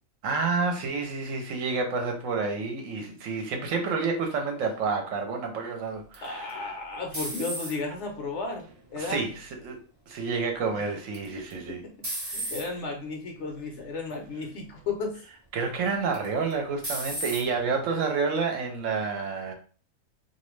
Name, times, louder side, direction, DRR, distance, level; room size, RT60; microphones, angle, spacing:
voice 1, 0.2-6.8 9.0-9.8 10.1-11.8 12.3-12.5 15.5-19.5, right 4 dB, 70° right, 0.9 m, -29 dB
sound 1, 6.1-8.0 8.6-9.1 11.1-11.5 12.0-12.7 13.4-13.7 14.1-14.2 16.1-16.5 16.8-17.4, right 1 dB, 20° right, 0.4 m, -34 dB
voice 2, 6.2-9.3 10.7-10.9 11.8-11.9 12.3-15.2, left 3 dB, 65° left, 0.9 m, -34 dB
2.4 x 2.0 x 3.1 m
omnidirectional pair, 1.5 m